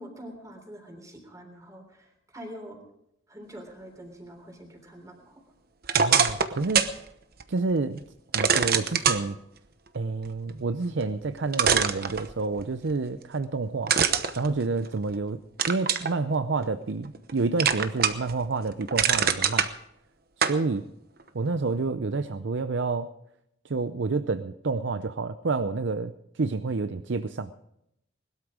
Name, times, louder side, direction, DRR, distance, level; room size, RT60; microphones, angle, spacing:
voice 1, 0.0-2.8 3.3-5.4, equal, 15° right, 3 dB, 3.4 m, -45 dB
sound 1, 5.8-7.0 7.4-7.5 8.3-9.2 11.0-11.1 11.5-12.6 13.9-15.1 15.6-16.1 16.6-17.3 17.6-18.3 18.7-19.7 20.4-20.6, right 7 dB, 50° right, 1.0 m, -23 dB
voice 2, 5.9-6.9 7.5-8.0 8.3-9.4 9.9-14.0 14.4-15.4 15.7-19.7 20.4-20.8 21.3-23.1 23.6-27.5, right 3 dB, 65° right, 11 dB, 0.6 m, -29 dB
20.5 x 12.5 x 5.0 m, 0.80 s
head